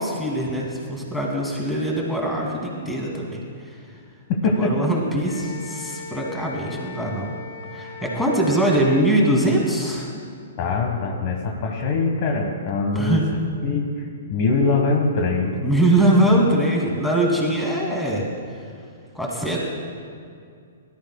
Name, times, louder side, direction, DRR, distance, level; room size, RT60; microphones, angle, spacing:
voice 1, 0.0-3.8 4.5-7.3 7.7-10.1 12.9-13.2 15.6-18.2 19.1-19.6, right 1 dB, 5° left, -2 dB, 2.4 m, -22 dB
voice 2, 4.3-4.9 10.6-15.5, left 3 dB, 40° left, 2 dB, 1.4 m, -23 dB
Wind instrument woodwind instrument, 5.2-9.1, left 4 dB, 60° left, 1.2 m, -38 dB
19.5 x 12.5 x 2.2 m, 2.3 s
figure-of-eight pair, 115°, 0 cm